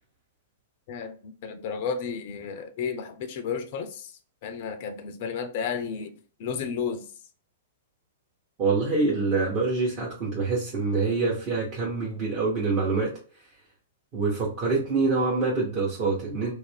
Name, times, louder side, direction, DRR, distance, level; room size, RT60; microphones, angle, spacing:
voice 1, 0.9-6.1 6.4-7.0, left 6 dB, 45° left, 8 dB, 0.3 m, -32 dB
voice 2, 8.6-13.1 14.1-16.5, right 3 dB, 35° right, -5 dB, 0.8 m, -25 dB
2.5 x 2.1 x 3.3 m, 0.42 s
figure-of-eight pair, 105°, 0 cm